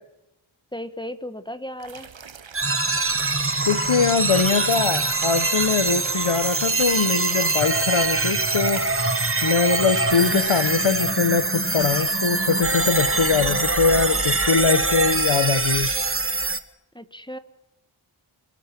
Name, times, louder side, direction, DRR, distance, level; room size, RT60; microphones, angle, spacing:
voice 1, 0.7-2.1 16.9-17.4, equal, 10° left, 12 dB, 1.3 m, -35 dB
sound 1, 1.8-10.7, right 6 dB, 65° right, 1.1 m, -38 dB
sound 2, 2.5-16.6, right 3 dB, 25° right, 1.5 m, -23 dB
voice 2, 3.7-8.8 9.4-15.9, left 5 dB, 75° left, 13 dB, 1.1 m, -22 dB
Breathing, 11.9-14.7 15.5-15.6 15.9-16.0 16.5-16.6, left 1 dB, 30° left, 7.0 m, -40 dB
24.0 x 20.5 x 6.0 m, 0.93 s
wide cardioid pair, 65°, 48 cm